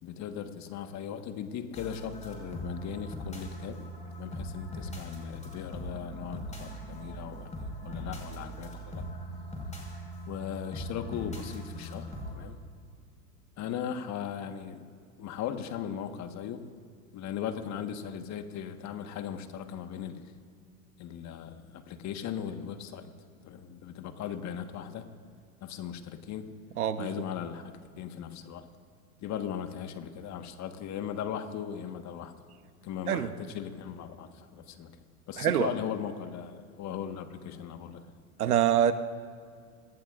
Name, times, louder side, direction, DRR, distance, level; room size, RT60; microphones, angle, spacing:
voice 1, 0.0-3.8 4.2-9.1 10.3-12.6 13.6-14.8 15.2-16.7 17.1-20.3 21.0-23.1 23.4-25.1 25.6-26.5 27.0-28.7 29.2-32.3 32.8-35.0 35.3-38.1, left 9 dB, 40° left, 7 dB, 1.6 m, -38 dB
sound 1, 1.7-12.3, equal, 15° left, 5.4 m, -40 dB
voice 2, 26.8-27.1 33.1-33.3 35.4-35.7 38.4-38.9, right 10 dB, 80° right, 11 dB, 1.1 m, -25 dB
27.5 x 18.5 x 2.6 m, 2.2 s
hypercardioid pair, 95°, 44 cm